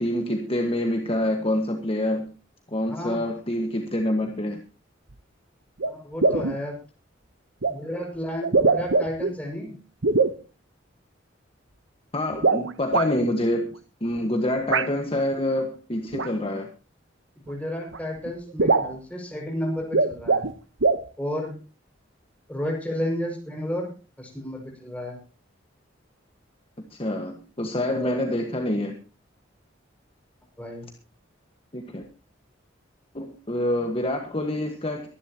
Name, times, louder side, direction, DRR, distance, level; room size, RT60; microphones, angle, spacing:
voice 1, 0.0-2.3 2.7-4.6 12.1-13.7 14.0-16.7 26.9-28.9 31.7-32.0 33.1-35.1, left 1 dB, 30° left, 4 dB, 1.5 m, -26 dB
voice 2, 2.9-3.2 5.9-6.8 7.7-9.8 17.5-20.5 21.2-21.6 22.5-23.9 24.2-25.2 28.0-28.2 30.6-30.9, equal, 5° left, 0 dB, 6.0 m, -32 dB
sound 1, 5.1-5.2 5.8-5.9 6.2-6.6 7.6-7.7 8.4-9.3 10.0-10.4 12.3-13.1 14.7-14.9 16.1-16.3 17.5-17.6 17.9-18.0 18.3-18.4 18.6-19.0 19.8-20.5 20.8-21.1, right 3 dB, 75° right, 1.0 m, -22 dB
24.0 x 11.0 x 2.9 m, 0.33 s
head